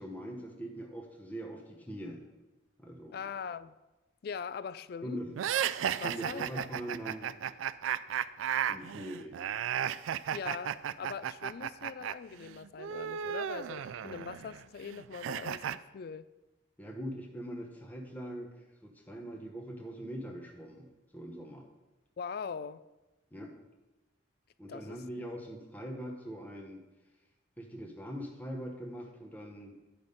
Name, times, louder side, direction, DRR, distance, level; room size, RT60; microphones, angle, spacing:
voice 1, 0.0-2.2 2.8-3.2 5.0-5.3 6.0-7.3 8.7-9.4 16.8-20.9 21.1-21.6 23.3-23.5 24.6-26.8 27.6-29.8, equal, 10° left, 0.9 m, -42 dB
voice 2, 3.1-3.8 4.2-5.2 5.7-6.7 10.3-16.3 22.2-22.8 24.7-25.0, left 6 dB, 50° left, 0.3 m, -42 dB
sound 1, 5.4-12.1 12.4-15.8, right 9 dB, 85° right, 0.3 m, -34 dB
10.5 x 5.1 x 5.3 m
head